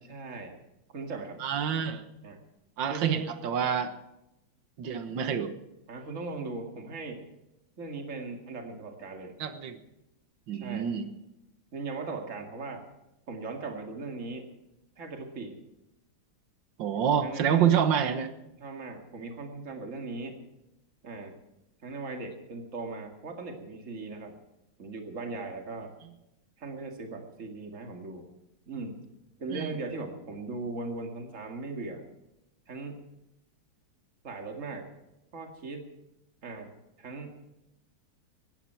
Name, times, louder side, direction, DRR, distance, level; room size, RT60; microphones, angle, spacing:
voice 1, 0.1-0.6 0.9-1.4 2.2-2.4 2.9-3.3 5.9-7.2 7.8-9.4 10.5-10.9 11.7-12.8 13.3-14.4 15.0-15.6 17.2-17.7 18.6-20.4 21.0-21.4 21.8-24.4 24.8-25.9 26.6-28.3 28.7-29.1 29.4-32.0 32.7-33.0 34.2-34.9 35.3-35.9 36.4-37.4, right 3 dB, 40° right, 3 dB, 2.4 m, -38 dB
voice 2, 1.4-2.0 2.8-3.9 4.8-5.5 9.4-9.8 10.5-11.1 16.8-18.3 29.5-29.7, right 8 dB, 65° right, 9 dB, 1.9 m, -27 dB
19.5 x 15.0 x 4.6 m, 0.89 s
omnidirectional pair, 2.2 m